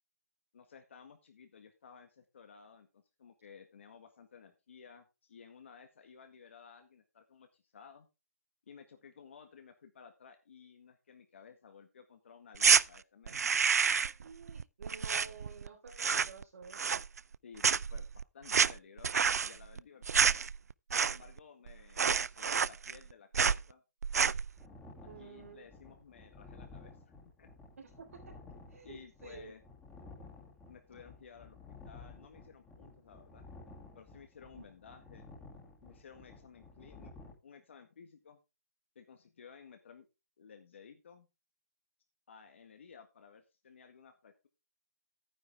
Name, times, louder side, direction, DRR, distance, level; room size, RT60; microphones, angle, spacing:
voice 1, 0.5-8.1 8.7-13.6 17.4-20.4 21.0-23.8 25.2-27.5 28.8-29.6 30.7-33.5 33.9-35.2 35.8-38.4 38.9-40.0 40.4-41.3 42.3-44.5, left 6 dB, 50° left, 6 dB, 1.7 m, -56 dB
sound 1, 12.5-12.8 13.3-14.2 14.5-15.7 15.9-16.4 16.7-17.4 17.6-21.4 21.7-21.8 22.0-23.1 23.3-23.6 24.0-24.5, right 6 dB, 80° right, 0.4 m, -28 dB
voice 2, 14.2-17.0 25.0-25.7 27.8-28.3 28.7-29.5, right 5 dB, 60° right, -3 dB, 3.9 m, -51 dB
sound 2, 24.6-37.3, left 3 dB, 5° left, 2.5 m, -53 dB
11.0 x 9.6 x 3.5 m, 0.27 s
hypercardioid pair, 165°, 8 cm